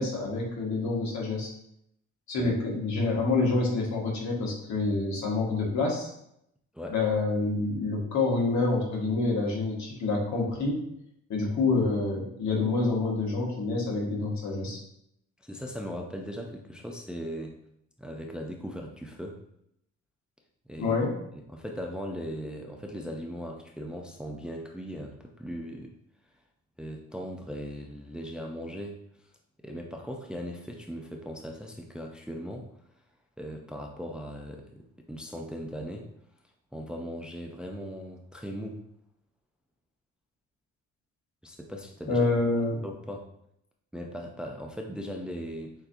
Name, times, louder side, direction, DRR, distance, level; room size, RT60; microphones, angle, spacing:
voice 1, 0.0-1.5 2.3-6.1 6.9-10.8 11.3-14.8 20.8-21.1 42.1-42.8, left 3 dB, 70° left, -2 dB, 1.4 m, -27 dB
voice 2, 15.4-17.5 18.0-19.4 20.7-21.0 21.4-25.9 26.8-29.0 29.6-32.7 33.4-36.1 36.7-38.8 41.4-42.3 42.8-43.3 43.9-45.7, equal, 5° right, 2 dB, 0.5 m, -38 dB
6.6 x 2.8 x 2.6 m, 0.76 s
cardioid pair, 90°, 30 cm